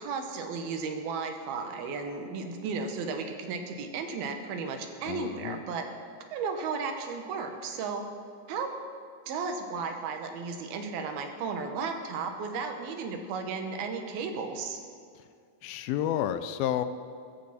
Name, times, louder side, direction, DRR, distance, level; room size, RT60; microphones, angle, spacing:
voice 1, 0.0-5.8 6.3-8.0 8.5-8.8 9.3-14.8, right 5 dB, 85° right, 5 dB, 3.2 m, -34 dB
voice 2, 5.1-5.6 15.2-15.3 15.6-16.9, left 11 dB, 85° left, 11 dB, 2.5 m, -31 dB
22.0 x 14.0 x 4.3 m, 2.3 s
omnidirectional pair, 4.2 m